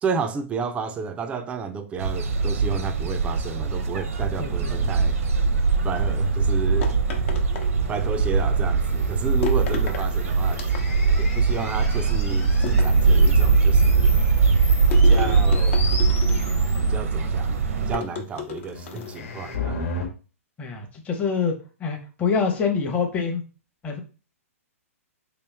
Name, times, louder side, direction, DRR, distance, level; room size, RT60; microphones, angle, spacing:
voice 1, 0.0-5.2 5.8-6.9 7.9-10.6 11.2-14.2 14.9-15.8 16.8-19.9, right 5 dB, 15° right, 0.4 m, -31 dB
sound 1, 2.0-18.0, right 4 dB, 75° right, 0.7 m, -21 dB
voice 2, 4.4-4.9 20.6-23.4 23.8-24.0, left 5 dB, 20° left, 0.8 m, -26 dB
sound 2, 6.8-8.2 9.4-10.1 10.5-11.2 12.6-13.5 14.9-16.7 17.9-19.2, left 8 dB, 60° left, 0.9 m, -34 dB
sound 3, 8.8-17.0 18.8-20.1, left 3 dB, 75° left, 1.2 m, -36 dB
3.3 x 3.0 x 3.4 m
hypercardioid pair, 135°, 8 cm